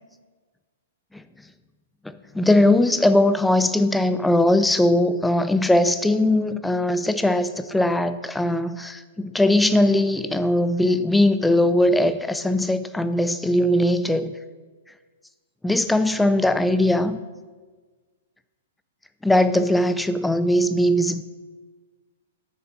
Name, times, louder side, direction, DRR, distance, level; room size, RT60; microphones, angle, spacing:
voice 1, 2.0-14.4 15.6-17.2 19.2-21.2, left 1 dB, 5° left, 11 dB, 0.4 m, -20 dB
6.6 x 6.5 x 6.1 m, 1.4 s
figure-of-eight pair, 110°, 0 cm